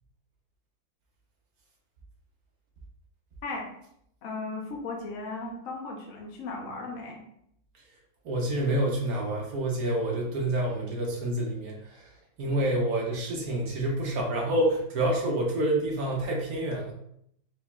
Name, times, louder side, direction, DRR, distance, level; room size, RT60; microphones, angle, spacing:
voice 1, 4.2-7.2, left 3 dB, 55° left, -1 dB, 0.9 m, -36 dB
voice 2, 8.2-12.1 12.4-16.9, right 1 dB, 60° right, -1 dB, 1.0 m, -28 dB
4.5 x 3.8 x 2.3 m, 0.72 s
omnidirectional pair, 2.2 m